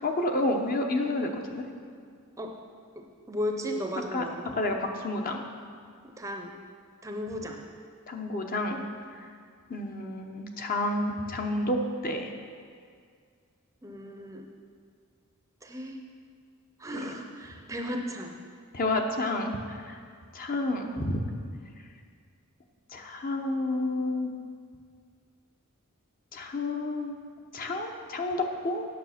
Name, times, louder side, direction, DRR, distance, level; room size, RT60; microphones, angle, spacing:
voice 1, 0.0-1.6 4.1-5.5 8.1-8.8 9.7-12.3 16.9-17.1 18.7-20.0 20.3-21.2 22.9-24.3 26.3-27.2 27.5-28.9, left 2 dB, 40° left, 3 dB, 0.8 m, -30 dB
voice 2, 3.3-4.4 6.2-6.6 7.0-7.6 13.8-14.4 15.6-16.0 16.8-18.4, equal, 15° right, 3 dB, 0.6 m, -35 dB
9.5 x 6.6 x 5.8 m, 2.1 s
head